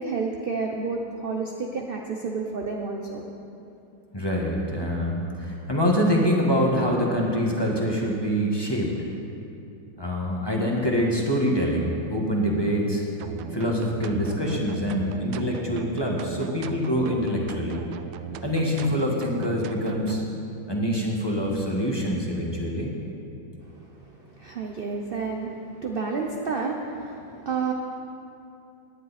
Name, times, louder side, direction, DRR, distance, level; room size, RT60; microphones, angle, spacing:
voice 1, 0.0-3.2 23.7-27.7, right 4 dB, 50° right, 1 dB, 0.6 m, -30 dB
voice 2, 4.1-9.1 10.0-13.0 13.5-17.8 18.4-20.2 20.7-22.9, equal, 15° left, -2 dB, 1.4 m, -25 dB
sound 1, 13.2-20.3, right 9 dB, 85° right, 1.3 m, -37 dB
18.0 x 10.5 x 4.2 m, 2.7 s
omnidirectional pair, 2.0 m